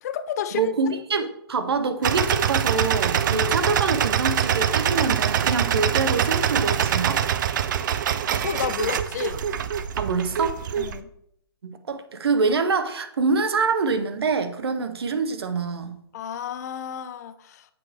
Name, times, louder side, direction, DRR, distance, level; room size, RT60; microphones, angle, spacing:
voice 1, 0.0-0.7 3.3-3.4 8.4-9.4 10.8-11.1 16.1-17.7, left 9 dB, 40° left, 12 dB, 0.4 m, -31 dB
voice 2, 0.5-7.2 10.0-10.8 11.6-16.0, right 4 dB, 70° right, 9 dB, 0.9 m, -25 dB
sound 1, 2.0-11.0, right 9 dB, 50° right, 0.5 m, -24 dB
7.7 x 5.7 x 3.5 m, 0.74 s
hypercardioid pair, 145°, 13 cm